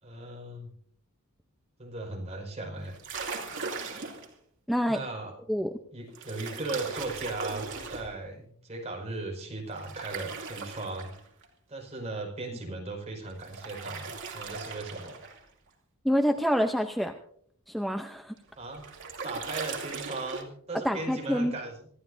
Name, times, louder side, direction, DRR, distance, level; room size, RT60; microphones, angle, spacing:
voice 1, 0.0-0.7 1.8-2.9 4.9-5.3 5.9-11.1 11.7-15.2 18.6-19.0 19.2-21.9, right 2 dB, 30° right, 0 dB, 5.3 m, -37 dB
sound 1, 2.8-4.3 6.1-8.1 9.8-11.4 13.3-15.4 18.4-20.4, right 4 dB, 60° right, 2.8 m, -38 dB
voice 2, 4.7-5.0 5.5-5.7 16.0-17.1 17.7-18.3 20.8-21.5, equal, ahead, 4 dB, 0.7 m, -27 dB
26.5 x 15.0 x 2.7 m, 0.64 s
head